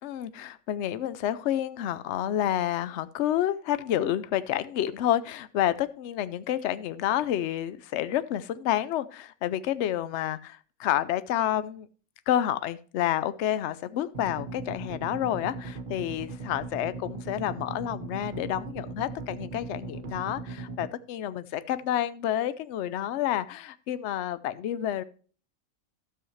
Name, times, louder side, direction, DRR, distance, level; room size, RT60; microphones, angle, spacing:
voice 1, 0.0-11.9 12.3-25.0, left 11 dB, 65° left, 14 dB, 0.8 m, -29 dB
sound 1, 14.1-20.9, right 4 dB, 45° right, 1.2 m, -39 dB
12.5 x 7.1 x 3.1 m, 0.39 s
omnidirectional pair, 1.4 m